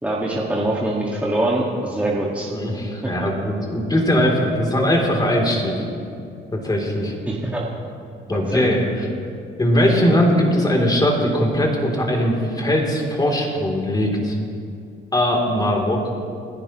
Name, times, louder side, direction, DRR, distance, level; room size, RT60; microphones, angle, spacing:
voice 1, 0.0-2.5 3.0-3.1 7.3-7.6 8.5-8.8, right 1 dB, 5° right, -5 dB, 2.0 m, -23 dB
voice 2, 2.5-5.8 6.5-7.1 8.3-9.0 9.6-14.4 15.1-16.1, equal, 20° left, 0 dB, 3.4 m, -20 dB
30.0 x 10.5 x 3.2 m, 2.4 s
cardioid pair, 90°, 20 cm